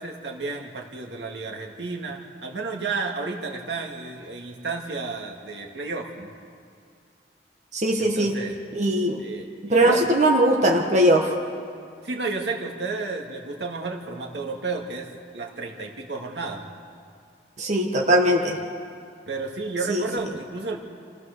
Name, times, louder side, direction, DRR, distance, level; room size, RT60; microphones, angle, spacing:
voice 1, 0.0-6.3 8.0-8.6 9.2-10.1 12.0-16.6 19.3-20.8, right 3 dB, 80° right, 1 dB, 2.2 m, -32 dB
voice 2, 7.7-8.3 8.7-9.2 9.7-11.3 17.6-18.6 19.9-20.0, right 1 dB, 40° right, 0 dB, 1.6 m, -20 dB
28.0 x 16.0 x 6.8 m, 2.3 s
head